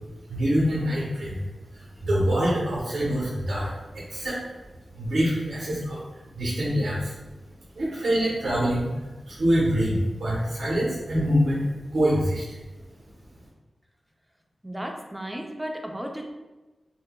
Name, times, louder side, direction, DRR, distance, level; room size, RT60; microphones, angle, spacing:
voice 1, 0.3-1.4 1.7-4.4 4.9-6.0 6.4-7.1 7.8-8.9 9.3-12.4, equal, 85° right, -7 dB, 0.8 m, -25 dB
voice 2, 14.6-16.3, equal, 10° right, 2 dB, 0.5 m, -34 dB
5.4 x 2.1 x 2.2 m, 1.1 s
cardioid pair, 60°, 0 cm